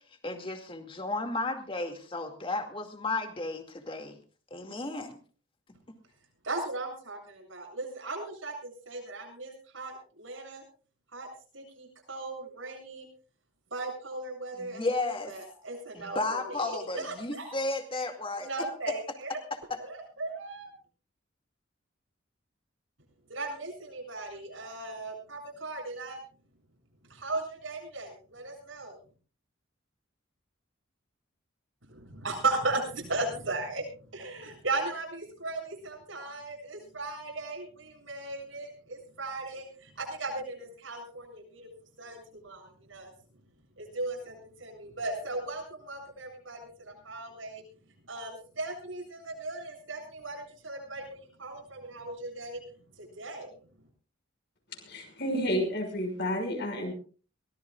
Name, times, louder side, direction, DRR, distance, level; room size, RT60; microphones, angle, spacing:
voice 1, 0.2-4.2 4.5-5.2 14.5-15.3 15.9-18.7 19.7-19.8, left 2 dB, 25° left, 5 dB, 2.3 m, -33 dB
voice 2, 6.4-10.6 11.1-11.3 11.5-13.0 13.7-17.5 18.4-19.4 19.8-20.7 23.3-26.2 27.1-29.0 32.2-33.9 34.1-41.7 42.0-43.1 43.8-47.6 48.1-52.6 53.0-53.5, right 2 dB, 80° right, 2 dB, 7.8 m, -37 dB
voice 3, 54.8-56.9, equal, 55° left, 3 dB, 5.9 m, -31 dB
23.5 x 18.5 x 2.4 m, 0.39 s
head